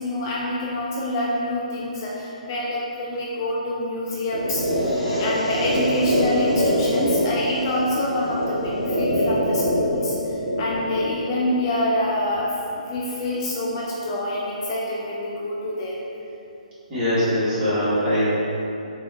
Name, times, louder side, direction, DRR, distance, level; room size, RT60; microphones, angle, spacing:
voice 1, 0.0-4.6 5.2-12.5 12.8-15.9, left 1 dB, 35° left, -4 dB, 0.3 m, -26 dB
sound 1, 4.3-12.3, equal, 5° right, 1.0 m, -24 dB
voice 2, 16.9-18.3, equal, 20° right, -12 dB, 1.2 m, -22 dB
3.5 x 2.3 x 2.5 m, 2.9 s
figure-of-eight pair, 135°, 4 cm